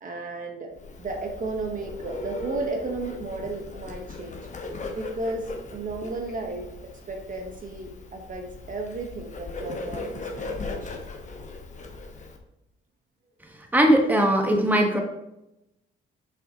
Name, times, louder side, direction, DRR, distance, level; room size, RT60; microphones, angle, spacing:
voice 1, 0.0-0.7 1.0-4.5 4.9-11.0, right 3 dB, 40° right, 2 dB, 1.1 m, -34 dB
Bird, 0.8-12.4, left 3 dB, 40° left, 1.1 m, -38 dB
voice 2, 13.7-15.0, right 1 dB, 10° right, 2 dB, 1.3 m, -19 dB
7.1 x 5.4 x 2.9 m, 0.88 s
cardioid pair, 90°, 20 cm